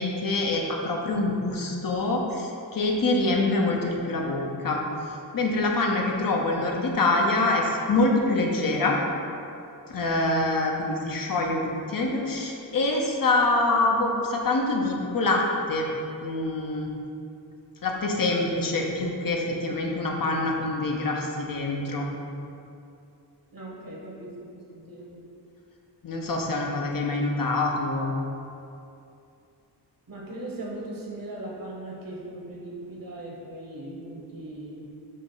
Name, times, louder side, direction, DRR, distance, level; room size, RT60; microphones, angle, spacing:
voice 1, 0.0-4.8 5.3-9.0 9.9-11.6 11.9-15.4 15.7-15.9 16.2-16.9 17.8-22.1 26.0-28.1, left 2 dB, 55° left, 0 dB, 0.8 m, -25 dB
voice 2, 23.5-25.2 30.1-34.9, right 1 dB, 55° right, -2 dB, 1.2 m, -39 dB
5.6 x 3.2 x 5.5 m, 2.7 s
wide cardioid pair, 105°, 40 cm